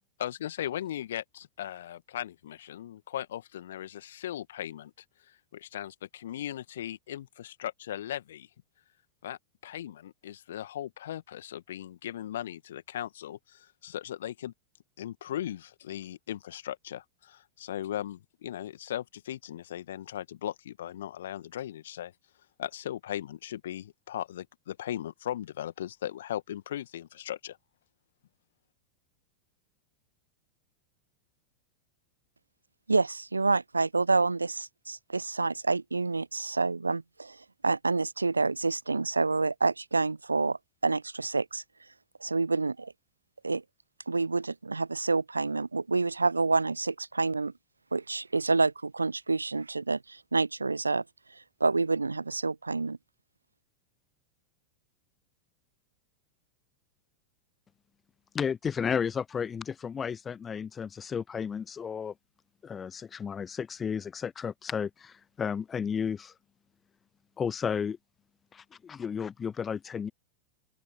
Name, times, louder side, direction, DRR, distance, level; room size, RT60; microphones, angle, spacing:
voice 1, 0.2-4.9 5.5-8.5 9.2-14.5 15.0-22.1 22.6-27.6, left 11 dB, 60° left, 1.9 m, -38 dB
voice 2, 32.9-41.6 42.2-42.9 43.4-43.6 44.1-47.5 47.9-51.0 51.3-53.0, right 3 dB, 80° right, 0.6 m, -28 dB
voice 3, 58.3-62.1 62.6-66.3 67.4-68.0 68.5-70.1, left 7 dB, 20° left, 0.4 m, -33 dB
open air
figure-of-eight pair, 90°, 0 cm